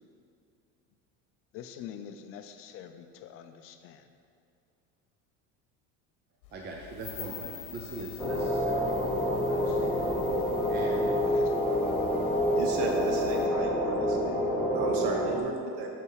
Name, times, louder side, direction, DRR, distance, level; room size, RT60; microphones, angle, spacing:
voice 1, 1.5-4.1 11.2-11.6, left 9 dB, 45° left, 8 dB, 0.5 m, -45 dB
sound 1, 6.4-13.5, left 8 dB, 65° left, 1.0 m, -46 dB
voice 2, 6.5-8.9 9.5-10.1 10.7-11.2, right 2 dB, 30° right, 0 dB, 0.7 m, -41 dB
sound 2, 8.2-15.4, equal, ahead, 1.0 m, -27 dB
voice 3, 12.5-15.9, right 3 dB, 80° right, 2 dB, 1.0 m, -35 dB
7.5 x 5.4 x 4.8 m, 2.5 s
cardioid pair, 155°, 33 cm